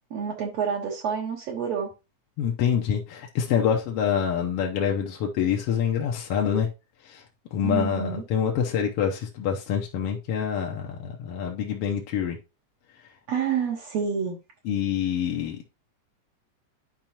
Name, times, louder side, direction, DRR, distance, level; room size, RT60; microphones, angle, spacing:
voice 1, 0.1-1.9 7.6-8.2 13.3-14.4, right 7 dB, 65° right, -1 dB, 2.2 m, -28 dB
voice 2, 2.4-6.7 7.0-7.2 7.5-12.4 14.6-15.6, left 8 dB, 70° left, 0 dB, 1.6 m, -26 dB
10.5 x 4.8 x 2.9 m, 0.28 s
omnidirectional pair, 3.4 m